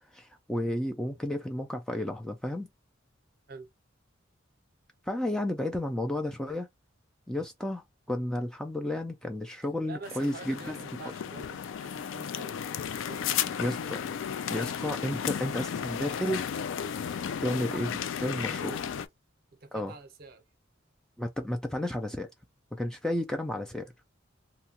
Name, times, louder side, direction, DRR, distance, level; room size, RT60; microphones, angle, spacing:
voice 1, 0.1-2.7 5.1-6.7 7.3-10.8 13.6-14.0 14.5-16.4 17.4-17.9 18.2-18.7 19.7-19.9 21.2-22.3 22.7-23.9, left 1 dB, 5° left, 0.3 m, -32 dB
voice 2, 9.9-12.6 12.9-13.6 18.4-18.9 19.5-20.4, right 3 dB, 50° right, 0.7 m, -46 dB
sound 1, 10.0-19.1, left 8 dB, 85° left, 0.3 m, -34 dB
2.8 x 2.2 x 2.8 m
head